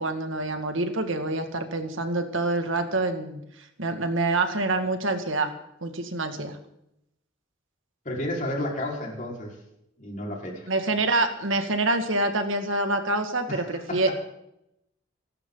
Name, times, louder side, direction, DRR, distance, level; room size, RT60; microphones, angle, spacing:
voice 1, 0.0-3.4 3.8-5.5 5.8-6.6 10.7-14.1, right 2 dB, 70° right, 6 dB, 2.1 m, -26 dB
voice 2, 8.0-9.6 10.0-10.7 13.5-14.1, left 1 dB, 40° left, -1 dB, 5.0 m, -32 dB
26.0 x 13.0 x 4.0 m, 0.81 s
head